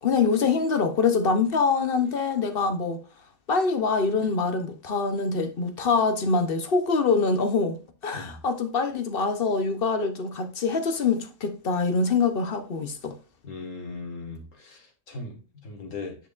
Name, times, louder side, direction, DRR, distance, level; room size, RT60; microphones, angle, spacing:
voice 1, 0.0-3.0 3.5-7.8 8.0-13.2, left 4 dB, 50° left, 0.9 m, -24 dB
voice 2, 13.4-14.8 15.1-15.4 15.6-16.1, left 3 dB, 65° left, 2.0 m, -37 dB
10.0 x 4.7 x 2.4 m
omnidirectional pair, 1.5 m